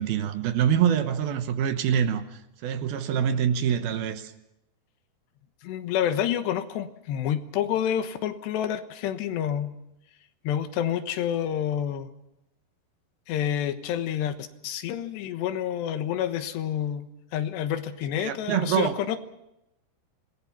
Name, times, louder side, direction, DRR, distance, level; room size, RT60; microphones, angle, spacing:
voice 1, 0.0-4.3 18.2-19.0, right 9 dB, 70° right, 9 dB, 2.8 m, -25 dB
voice 2, 5.6-9.7 10.4-12.1 13.3-14.3 14.6-17.1 17.3-19.2, left 10 dB, 90° left, 9 dB, 3.5 m, -28 dB
26.5 x 19.5 x 6.0 m, 0.87 s
omnidirectional pair, 4.8 m